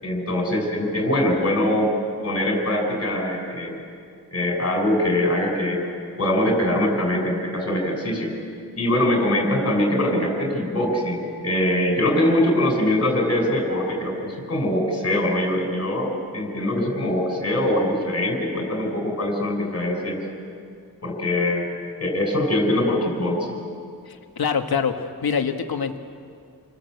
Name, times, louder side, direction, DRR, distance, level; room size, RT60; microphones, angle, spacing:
voice 1, 0.0-1.9 2.2-3.8 4.3-5.8 6.2-8.3 8.8-20.3 21.0-21.6 22.0-23.6, left 1 dB, 40° left, 1 dB, 6.5 m, -23 dB
voice 2, 24.1-26.0, left 6 dB, 70° left, 6 dB, 1.7 m, -25 dB
29.0 x 20.5 x 8.1 m, 2.3 s
wide cardioid pair, 125°, 38 cm